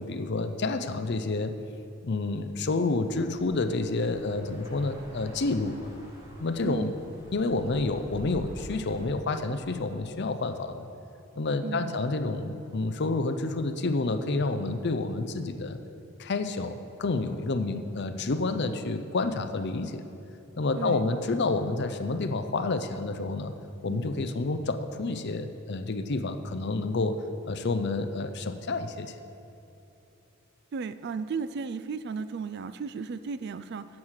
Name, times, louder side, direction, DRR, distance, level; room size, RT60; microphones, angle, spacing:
voice 1, 0.0-1.6 2.0-5.9 6.4-6.9 7.3-10.9 11.4-15.8 16.2-20.0 20.6-23.5 23.8-29.2, left 3 dB, 50° left, 9 dB, 0.6 m, -29 dB
sound 1, 2.8-9.1, equal, 15° right, 2.8 m, -47 dB
voice 2, 6.6-7.0 11.6-12.0 20.8-21.0 23.9-24.3 30.7-33.9, right 5 dB, 50° right, 13 dB, 0.3 m, -35 dB
10.5 x 7.3 x 6.5 m, 2.9 s
head